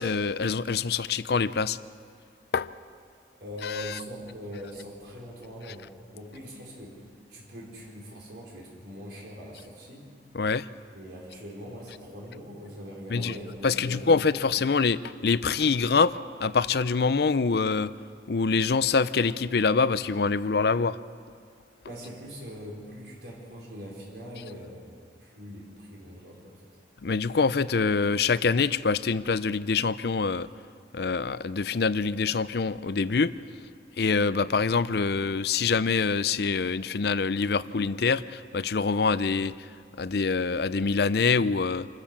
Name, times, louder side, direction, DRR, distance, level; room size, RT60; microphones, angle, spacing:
voice 1, 0.0-1.8 2.5-2.7 3.6-3.8 10.3-10.7 13.1-13.3 13.6-17.9 18.3-21.0 27.0-30.5 30.9-33.3 34.0-39.5 40.0-41.9, left 4 dB, 65° left, 16 dB, 0.5 m, -25 dB
voice 2, 3.4-7.0 7.3-10.1 10.9-14.1 21.8-26.6, equal, 80° right, -3 dB, 4.4 m, -42 dB
27.0 x 14.0 x 7.4 m, 2.2 s
head